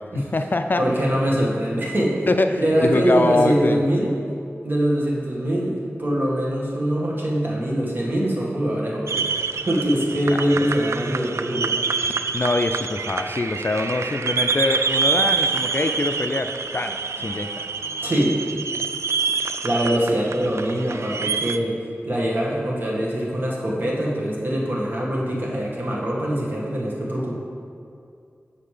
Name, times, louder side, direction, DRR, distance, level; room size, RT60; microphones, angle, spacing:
voice 1, 0.0-0.8 2.3-3.8 10.3-10.5 12.1-17.7, left 2 dB, 45° left, 6 dB, 0.4 m, -24 dB
voice 2, 0.8-2.2 2.6-4.1 4.6-9.3 9.7-11.8 18.0-18.4 19.6-21.7 22.0-27.4, right 1 dB, 45° right, -4 dB, 2.0 m, -23 dB
sound 1, 9.1-21.6, right 5 dB, 85° right, 0.3 m, -26 dB
7.5 x 6.7 x 5.0 m, 2.5 s
wide cardioid pair, 85°, 5 cm